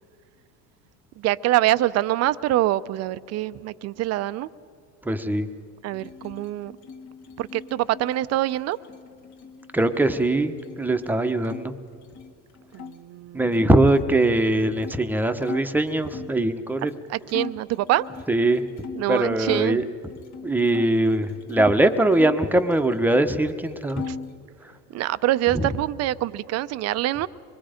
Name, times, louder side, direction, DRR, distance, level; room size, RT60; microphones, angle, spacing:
voice 1, 1.2-4.5 5.8-6.8 7.4-8.8 12.7-13.7 17.1-18.1 18.9-19.8 24.1-24.2 24.9-27.3, right 15 dB, 45° right, 16 dB, 0.6 m, -25 dB
voice 2, 5.0-5.5 9.7-11.8 13.3-17.0 18.3-18.7 19.1-19.9 20.4-24.1 24.6-24.7 25.5-25.7, right 1 dB, 5° right, 8 dB, 1.0 m, -21 dB
sound 1, 5.9-11.6 11.9-13.0 13.5-16.4 16.9-17.0 17.3-19.7 20.1-21.7 22.1-23.2 23.5-24.4, left 5 dB, 50° left, 1.6 m, -40 dB
25.0 x 21.5 x 5.1 m, 2.3 s
supercardioid pair, 120°, 36 cm